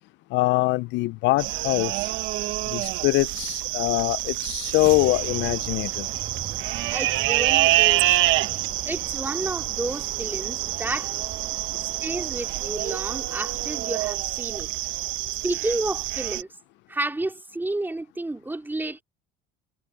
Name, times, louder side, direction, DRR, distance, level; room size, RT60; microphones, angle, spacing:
voice 1, 0.3-2.1 2.7-6.1, left 21 dB, 65° left, 0.4 m, -23 dB
sound 1, 1.4-16.4, right 17 dB, 70° right, 1.0 m, -27 dB
sound 2, 4.8-14.1, right 7 dB, 35° right, 1.6 m, -41 dB
voice 2, 6.9-8.1 8.9-11.1 11.8-14.7 15.4-16.5 16.9-19.0, right 2 dB, 10° right, 3.9 m, -31 dB
cardioid pair, 120°, 20 cm